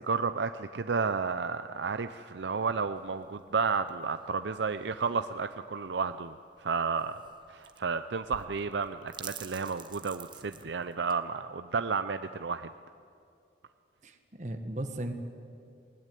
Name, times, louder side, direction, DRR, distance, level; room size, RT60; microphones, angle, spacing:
voice 1, 0.0-7.1 7.5-12.7, right 5 dB, 85° right, 10 dB, 0.6 m, -32 dB
sound 1, 3.0-11.2, right 7 dB, 25° right, 0.9 m, -50 dB
voice 2, 14.0-15.1, right 1 dB, 40° right, 6 dB, 1.4 m, -36 dB
21.0 x 20.0 x 9.2 m, 2.4 s
head